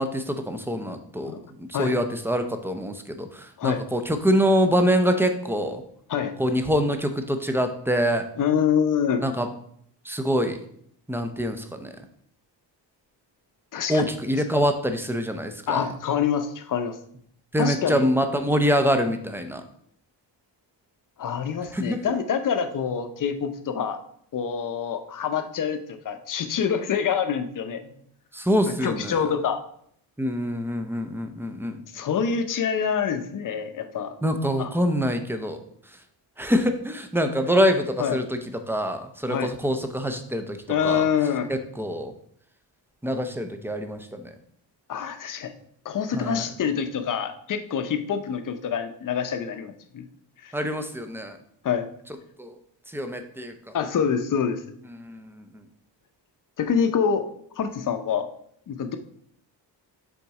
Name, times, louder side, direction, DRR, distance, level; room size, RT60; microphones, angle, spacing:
voice 1, 0.0-5.8 6.4-8.3 9.2-9.5 10.0-10.6 11.1-11.9 13.9-15.9 17.5-19.6 21.7-22.0 28.3-29.2 30.2-31.8 34.2-35.6 36.4-38.4 38.7-40.6 40.8-41.1 41.5-42.1 43.0-44.3 46.1-46.4 50.5-51.4 52.4-52.6 52.9-53.7 54.9-55.6, equal, 5° right, 7 dB, 0.5 m, -25 dB
voice 2, 8.4-9.2 13.7-14.1 15.7-17.0 17.6-18.0 21.2-24.0 24.3-27.9 28.8-29.6 31.9-34.1 34.6-34.7 38.0-38.2 39.3-39.5 40.7-41.5 44.9-45.5 45.8-50.0 50.4-50.5 51.6-51.9 53.7-54.6 56.6-57.2 57.6-58.3 58.7-59.0, left 7 dB, 45° left, 8 dB, 0.7 m, -26 dB
7.1 x 3.9 x 4.7 m, 0.66 s
wide cardioid pair, 155°, 44 cm